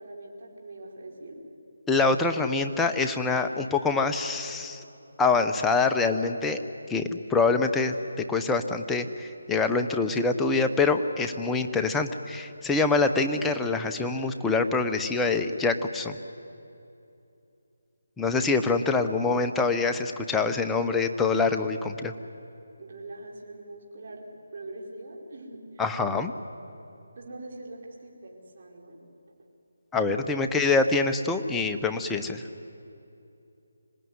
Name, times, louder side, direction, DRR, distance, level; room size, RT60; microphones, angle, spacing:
voice 1, 0.0-1.4 22.8-24.3 24.5-25.6 27.1-29.0 30.1-30.3, right 2 dB, 50° right, -1 dB, 5.0 m, -43 dB
voice 2, 1.9-4.8 5.2-6.6 6.9-7.9 8.3-16.2 18.2-22.1 25.8-26.3 29.9-32.4, left 4 dB, 5° left, 6 dB, 0.9 m, -25 dB
25.5 x 18.5 x 9.6 m, 2.7 s
figure-of-eight pair, 160°, 0 cm